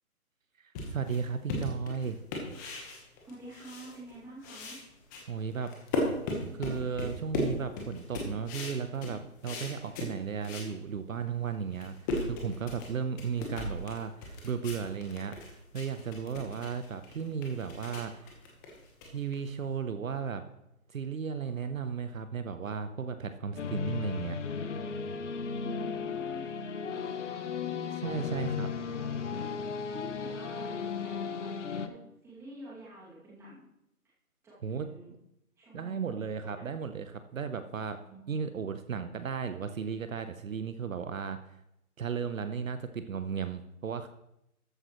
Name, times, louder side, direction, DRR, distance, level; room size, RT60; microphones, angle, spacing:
voice 1, 0.6-2.2 5.3-5.7 6.5-18.3 19.0-20.4 20.9-24.4 28.0-28.7 34.6-34.9 35.7-38.0 38.3-41.4 42.0-44.1, right 6 dB, 65° right, 9 dB, 0.9 m, -35 dB
sound 1, 0.8-4.2 4.4-10.7 11.2-11.3 11.6-19.7, left 2 dB, 15° left, 1.2 m, -37 dB
voice 2, 3.2-4.8 25.6-29.4 29.9-31.5 31.8-33.7 34.4-35.1 35.6-36.8 38.0-38.4, right 1 dB, 5° right, -7 dB, 2.4 m, -49 dB
sound 2, 23.6-31.9, left 6 dB, 55° left, 1.0 m, -35 dB
13.5 x 8.8 x 3.1 m, 0.83 s
hypercardioid pair, 155°, 44 cm